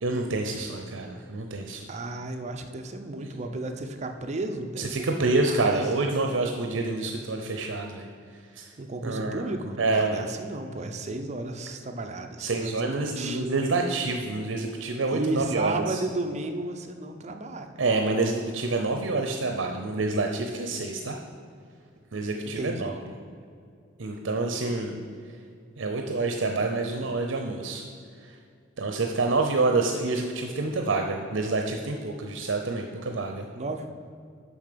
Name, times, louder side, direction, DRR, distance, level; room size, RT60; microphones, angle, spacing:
voice 1, 0.0-1.9 4.8-8.0 8.5-8.7 9.0-9.5 9.8-10.2 12.4-16.0 17.8-21.2 22.1-22.9 24.0-25.0 25.8-27.8 28.8-33.4, right 3 dB, 75° right, 3 dB, 0.6 m, -27 dB
voice 2, 1.9-5.8 8.8-13.5 14.8-17.7 22.5-22.9 33.5-33.9, right 2 dB, 35° right, 6 dB, 0.5 m, -33 dB
7.1 x 5.5 x 6.7 m, 2.3 s
head